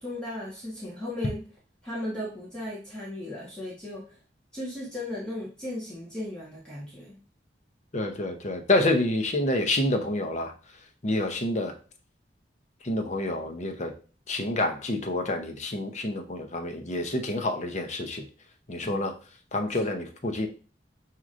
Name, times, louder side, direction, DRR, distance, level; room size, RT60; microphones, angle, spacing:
voice 1, 0.0-1.4 1.8-4.1 4.5-7.2 18.8-19.0 19.8-19.9, left 1 dB, 5° left, -8 dB, 1.2 m, -36 dB
voice 2, 7.9-10.5 11.0-11.7 12.8-13.9 14.3-18.2 18.7-19.1 19.5-20.5, left 1 dB, 40° left, 4 dB, 0.7 m, -28 dB
6.0 x 2.9 x 2.5 m, 0.37 s
head